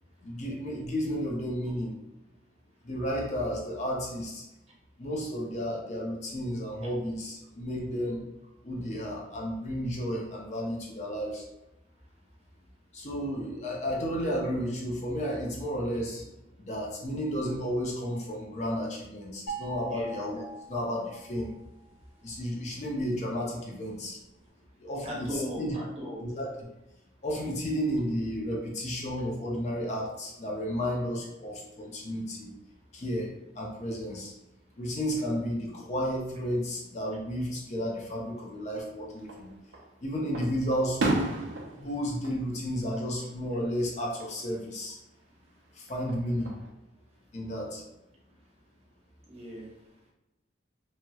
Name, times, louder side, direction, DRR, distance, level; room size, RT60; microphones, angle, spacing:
voice 1, 0.2-2.0 2.8-4.4 5.0-8.3 8.6-11.4 12.9-16.2 16.6-21.5 22.2-24.2 24.8-25.7 26.2-26.5 27.2-32.5 32.9-34.3 34.8-39.5 40.0-41.3 41.7-45.0 45.7-46.6 47.3-47.8, equal, 40° left, -2 dB, 0.5 m, -32 dB
sound 1, 19.5-21.7, right 5 dB, 90° left, 0.8 m, -41 dB
voice 2, 25.0-26.2 49.3-49.7, equal, 35° right, -4 dB, 0.8 m, -37 dB
Fireworks, 39.2-39.9 40.3-43.5 43.8-44.4 45.9-46.7, right 2 dB, 90° right, 0.5 m, -34 dB
2.9 x 2.8 x 2.2 m, 0.94 s
head